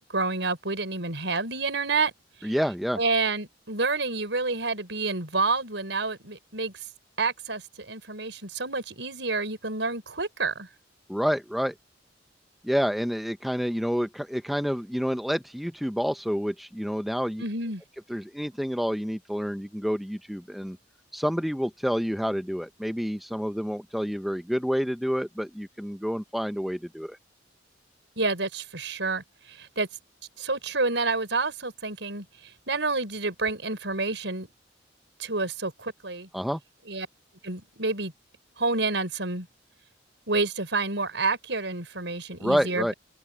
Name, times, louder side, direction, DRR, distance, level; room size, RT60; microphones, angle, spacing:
voice 1, 0.1-2.1 2.4-2.5 3.0-6.7 7.2-10.7 17.4-17.8 28.2-29.2 29.5-29.9 30.4-32.3 32.7-34.5 35.2-36.3 36.9-37.1 37.4-38.1 38.6-39.5 40.3-42.9, right 3 dB, 75° right, 5.6 m, -28 dB
voice 2, 2.4-3.0 11.1-11.7 12.6-17.4 18.1-20.8 21.1-27.2 36.3-36.6 42.4-42.9, equal, ahead, 0.6 m, -28 dB
open air
head